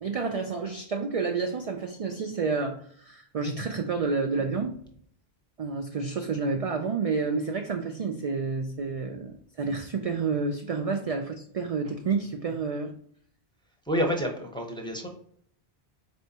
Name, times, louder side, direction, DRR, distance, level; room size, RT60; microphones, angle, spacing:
voice 1, 0.0-4.8 5.6-12.9, right 4 dB, 55° right, 3 dB, 0.4 m, -29 dB
voice 2, 13.9-15.1, equal, 5° left, 0 dB, 0.7 m, -28 dB
4.4 x 3.5 x 2.8 m, 0.62 s
omnidirectional pair, 1.1 m